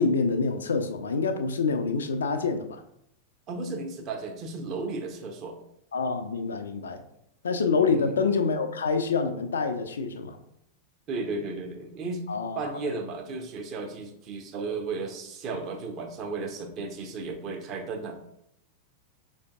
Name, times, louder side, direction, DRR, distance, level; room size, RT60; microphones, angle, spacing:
voice 1, 0.0-2.8 5.9-7.0 7.4-10.4 12.3-12.7, left 4 dB, 70° left, 7 dB, 0.3 m, -26 dB
voice 2, 3.5-5.6 7.9-8.2 11.1-12.3 12.5-18.2, right 3 dB, 35° right, 4 dB, 0.7 m, -34 dB
5.0 x 2.6 x 2.3 m, 0.76 s
figure-of-eight pair, 90°, 0 cm